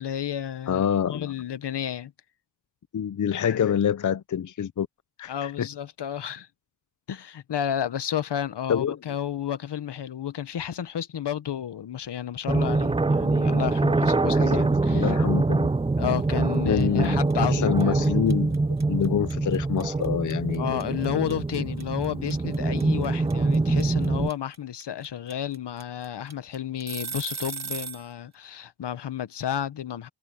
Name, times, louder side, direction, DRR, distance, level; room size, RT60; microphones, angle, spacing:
voice 1, 0.0-2.1 3.5-3.7 5.3-6.5 7.1-15.1 16.0-18.1 20.6-30.1, left 9 dB, 75° left, 1.2 m, -31 dB
voice 2, 0.7-1.3 2.9-4.9 5.2-5.7 8.7-9.0 14.3-15.7 16.6-18.6 18.9-20.8, left 8 dB, 45° left, 0.6 m, -26 dB
sound 1, 12.5-24.3, right 3 dB, 15° right, 0.5 m, -24 dB
sound 2, 16.8-17.0 17.3-28.1, right 6 dB, 40° right, 1.4 m, -37 dB
cardioid pair, 80°, 41 cm